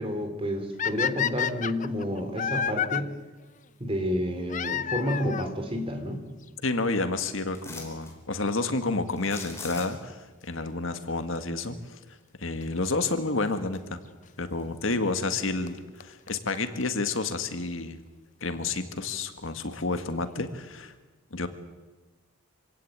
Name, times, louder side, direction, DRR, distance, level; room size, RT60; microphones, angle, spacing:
voice 1, 0.0-3.1 3.8-6.2, equal, 25° right, 6 dB, 3.2 m, -30 dB
sound 1, 0.8-3.0 4.5-5.5 6.5-6.6 7.3-7.4 7.5-7.6 9.5-9.8 12.6-12.7 13.7-13.8 15.3-15.4 15.7-15.8 16.0-16.1 16.3-16.4 16.5-16.6 16.8-16.9 17.1-17.2, left 8 dB, 35° left, 0.6 m, -29 dB
voice 2, 6.6-12.0 12.4-14.0 14.4-18.0 18.4-20.9 21.3-21.5, left 3 dB, 70° left, 8 dB, 1.9 m, -30 dB
sound 2, 7.5-8.1 9.2-10.2 12.7-12.8 13.3-14.0 14.4-15.5 15.9-16.0, left 3 dB, 15° left, 4.4 m, -43 dB
26.0 x 17.0 x 8.9 m, 1.3 s
head